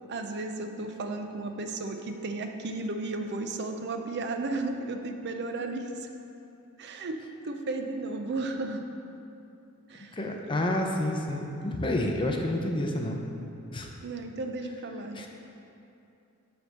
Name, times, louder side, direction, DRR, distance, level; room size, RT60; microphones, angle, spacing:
voice 1, 0.1-6.1 6.8-8.9 9.9-10.2 14.0-15.2, right 2 dB, 50° right, 5 dB, 0.5 m, -34 dB
voice 2, 10.1-13.2 13.7-13.9 15.1-15.3, left 1 dB, 25° left, 2 dB, 0.6 m, -29 dB
7.9 x 3.4 x 6.5 m, 2.7 s
head